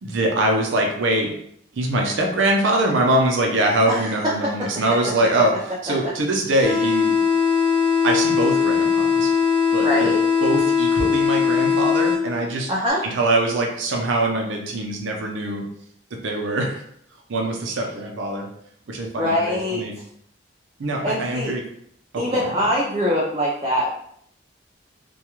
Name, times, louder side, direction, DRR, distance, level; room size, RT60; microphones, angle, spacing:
voice 1, 0.0-1.3 1.7-5.5 5.8-7.2 8.0-9.3 9.7-10.1 10.4-12.7 13.1-15.7 16.1-16.8 17.3-18.5 18.9-19.9 20.8-21.6 22.1-22.4, right 1 dB, 80° right, 1 dB, 0.5 m, -23 dB
voice 2, 4.4-4.8 9.8-10.2 12.7-13.0 19.2-19.9 21.0-21.5 22.2-24.0, equal, 25° right, -6 dB, 0.4 m, -23 dB
sound 1, 6.6-12.6, left 6 dB, 25° left, 0.9 m, -20 dB
2.3 x 2.2 x 2.9 m, 0.68 s
head